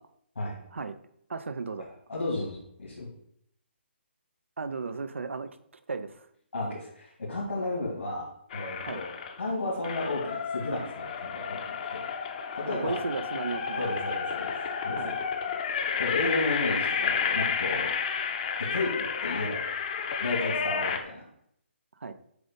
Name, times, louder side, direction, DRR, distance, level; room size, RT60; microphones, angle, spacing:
voice 1, 1.3-1.9 4.6-5.5 5.9-6.3 8.8-9.0 12.7-13.9 14.9-15.2 22.0-22.1, right 4 dB, 85° right, 11 dB, 0.6 m, -35 dB
voice 2, 2.1-3.1 6.5-8.3 8.5-9.1 9.4-12.0 12.5-13.0 13.8-14.5 14.8-15.2 16.0-17.9 18.7-19.6 20.2-21.2, left 2 dB, 85° left, -6 dB, 2.3 m, -33 dB
sound 1, 8.5-9.4 9.8-21.0, left 6 dB, 40° left, 0.7 m, -31 dB
7.7 x 2.6 x 5.2 m, 0.70 s
hypercardioid pair, 155°, 7 cm